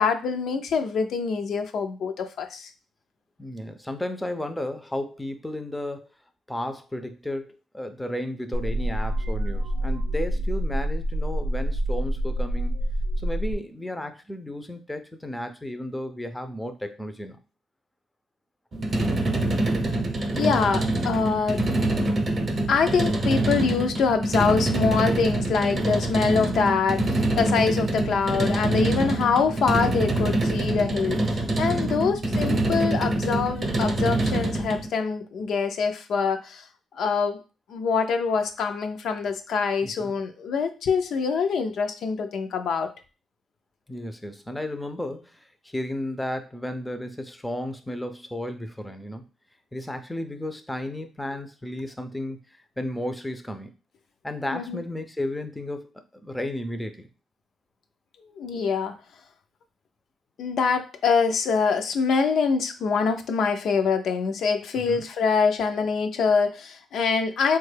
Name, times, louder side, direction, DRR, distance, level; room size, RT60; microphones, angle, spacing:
voice 1, 0.0-2.7 20.3-21.6 22.7-36.6 36.9-37.4 37.7-42.9 54.5-54.8 58.3-59.0 60.4-67.6, left 5 dB, 70° left, 6 dB, 0.4 m, -24 dB
voice 2, 3.4-6.1 6.5-12.8 13.2-17.4 31.9-32.2 39.8-40.1 43.9-49.3 49.7-53.7 54.2-55.9 56.2-57.1 64.9-65.0, left 1 dB, 10° left, 7 dB, 0.4 m, -33 dB
sound 1, 8.5-13.5, right 1 dB, 90° right, 0.6 m, -27 dB
sound 2, 18.7-34.9, right 2 dB, 40° right, 0.7 m, -25 dB
3.5 x 2.2 x 3.2 m, 0.32 s
cardioid pair, 90°, 0 cm